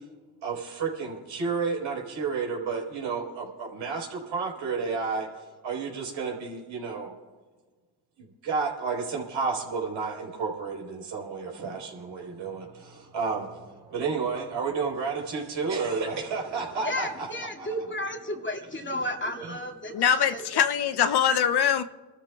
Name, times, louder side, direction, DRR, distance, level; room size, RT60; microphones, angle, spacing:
voice 1, 0.4-7.1 8.2-17.7 19.4-19.6, right 5 dB, 75° right, 4.3 m, -31 dB
voice 2, 16.8-20.7, left 1 dB, 25° left, 2.4 m, -33 dB
voice 3, 19.9-21.8, left 8 dB, 55° left, 0.8 m, -23 dB
27.5 x 13.0 x 2.4 m
supercardioid pair, 50°, 47 cm